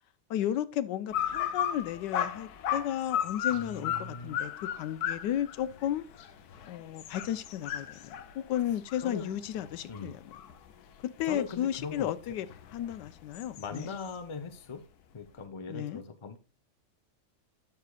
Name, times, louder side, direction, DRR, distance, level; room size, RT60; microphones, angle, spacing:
voice 1, 0.3-6.0 6.7-10.2 11.0-13.9 15.7-16.0, left 11 dB, 90° left, 1.3 m, -34 dB
sound 1, 1.1-10.7 11.2-14.2, left 9 dB, 70° left, 1.2 m, -35 dB
voice 2, 3.5-4.5 9.0-9.3 9.9-10.1 11.3-12.1 13.6-14.8 15.1-16.4, left 4 dB, 35° left, 0.4 m, -40 dB
12.0 x 6.7 x 2.3 m
omnidirectional pair, 1.8 m